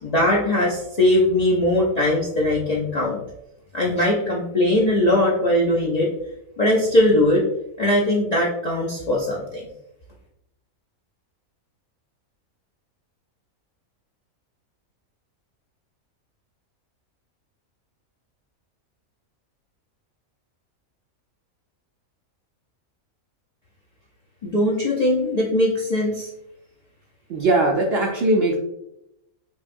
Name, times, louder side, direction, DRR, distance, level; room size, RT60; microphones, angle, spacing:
voice 1, 0.0-3.2 3.7-6.1 6.6-7.4 7.8-9.7 24.4-26.3, left 1 dB, 50° left, -5 dB, 0.4 m, -20 dB
voice 2, 27.3-28.6, right 2 dB, 65° right, 0 dB, 0.6 m, -20 dB
5.4 x 2.3 x 2.5 m, 0.83 s
omnidirectional pair, 1.5 m